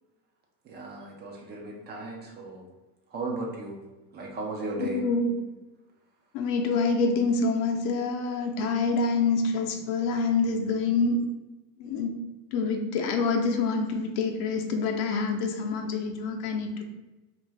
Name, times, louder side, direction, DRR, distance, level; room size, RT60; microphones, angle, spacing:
voice 1, 0.6-2.7 3.1-3.8 4.1-5.0, right 2 dB, 25° right, 0 dB, 0.3 m, -36 dB
voice 2, 4.8-5.4 6.3-11.2 11.8-12.1 12.5-16.8, left 4 dB, 70° left, 3 dB, 0.6 m, -26 dB
2.6 x 2.5 x 3.1 m, 1.1 s
supercardioid pair, 105°, 49 cm